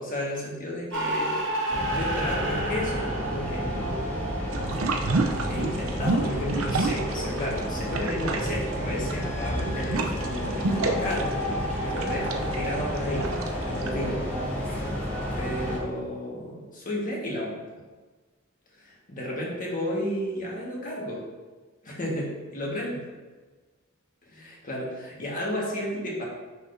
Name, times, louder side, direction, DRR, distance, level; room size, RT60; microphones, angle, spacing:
voice 1, 0.0-1.4 1.7-4.3 5.4-14.2 14.6-14.9 15.4-17.8 18.7-21.2 21.8-23.1 24.2-26.3, left 1 dB, 40° left, -3 dB, 1.5 m, -33 dB
sound 1, 0.9-6.5, right 1 dB, 65° right, 1.1 m, -32 dB
sound 2, 1.7-15.8, equal, 10° left, 1.8 m, -31 dB
sound 3, 4.5-7.6 7.9-13.9, right 3 dB, 85° right, 0.6 m, -29 dB
6.1 x 5.8 x 2.7 m, 1.3 s
head